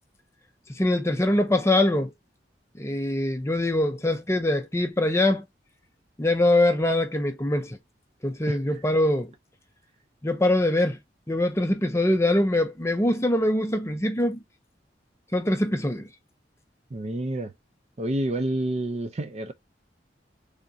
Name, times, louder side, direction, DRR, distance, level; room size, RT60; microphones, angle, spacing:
voice 1, 0.7-2.1 2.8-5.4 6.2-7.8 8.2-9.3 10.2-11.0 11.3-14.4 15.3-16.1, left 1 dB, 15° left, 0.5 m, -23 dB
voice 2, 16.9-17.5 18.0-19.5, right 1 dB, 35° right, 0.5 m, -28 dB
3.5 x 2.6 x 3.9 m
head